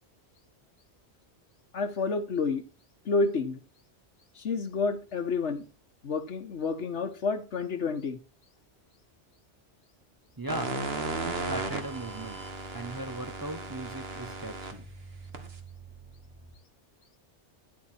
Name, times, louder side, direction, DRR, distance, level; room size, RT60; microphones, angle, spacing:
voice 1, 1.7-2.6 3.0-3.6 4.4-5.6 6.0-8.2, left 4 dB, 85° left, 1.5 m, -29 dB
voice 2, 10.4-10.8 11.1-12.5 12.7-14.8, right 1 dB, 25° right, 0.6 m, -38 dB
sound 1, 10.5-16.5, right 3 dB, 60° right, 1.7 m, -37 dB
11.0 x 7.8 x 4.4 m
omnidirectional pair, 1.2 m